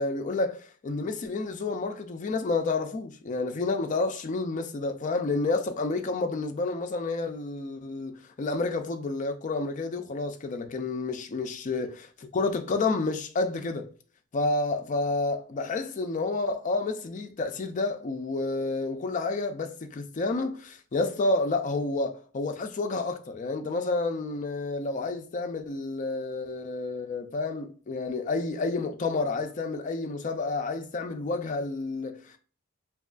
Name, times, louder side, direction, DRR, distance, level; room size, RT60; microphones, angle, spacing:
voice 1, 0.0-13.9 14.3-32.4, left 3 dB, 35° left, 0.3 m, -30 dB
2.9 x 2.3 x 2.4 m
head